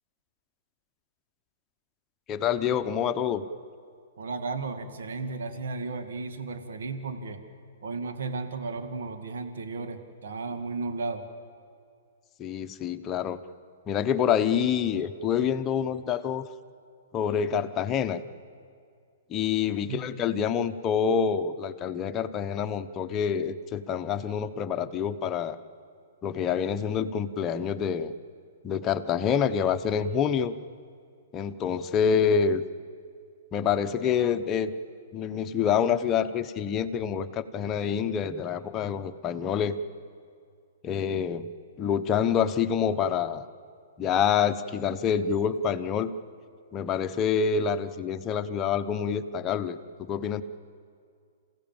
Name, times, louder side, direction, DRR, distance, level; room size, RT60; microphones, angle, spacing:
voice 1, 2.3-3.4 12.4-13.4 13.9-16.4 17.1-18.2 19.3-25.6 26.2-28.1 28.6-30.6 31.3-32.6 33.5-34.7 35.1-39.8 40.8-41.5 41.8-43.5 44.0-46.1 46.7-50.4, left 7 dB, 25° left, 8 dB, 1.0 m, -27 dB
voice 2, 4.2-7.4 7.8-11.3 19.9-20.1, right 3 dB, 75° right, 6 dB, 2.0 m, -34 dB
28.0 x 16.0 x 7.4 m, 2.3 s
hypercardioid pair, 125°, 0 cm